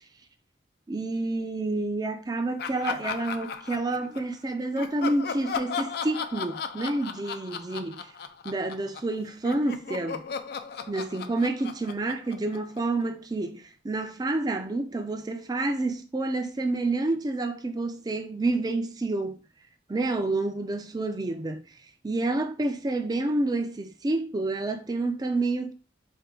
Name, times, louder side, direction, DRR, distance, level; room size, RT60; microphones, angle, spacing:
voice 1, 0.9-8.1 8.4-10.2 10.9-19.4 19.9-21.6 22.0-25.7, right 2 dB, 20° right, 0.4 m, -29 dB
Laughter, 2.6-4.3 4.7-9.1 9.4-13.0, left 6 dB, 55° left, 0.3 m, -36 dB
4.5 x 2.2 x 3.6 m
head